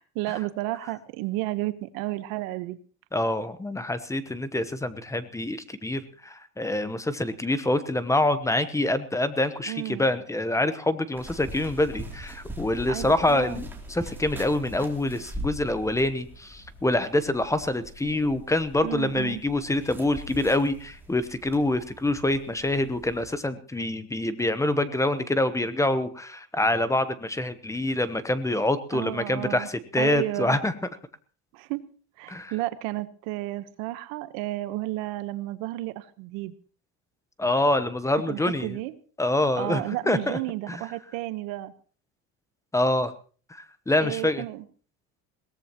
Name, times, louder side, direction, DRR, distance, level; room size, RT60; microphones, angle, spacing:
voice 1, 0.0-2.8 9.7-10.1 12.9-13.6 18.8-19.4 28.9-29.7 30.0-30.6 31.5-31.8 32.2-36.5 38.3-38.9 39.6-41.7 44.0-44.6, right 17 dB, 80° right, 12 dB, 1.2 m, -32 dB
voice 2, 3.1-30.7 32.3-32.5 37.4-38.8 39.2-40.4 40.7-40.8 42.7-43.1 43.5-44.4, left 1 dB, 10° left, 13 dB, 0.9 m, -26 dB
sound 1, 11.1-23.3, equal, 5° right, 2.9 m, -42 dB
21.5 x 17.5 x 3.0 m, 0.41 s
cardioid pair, 130°, 33 cm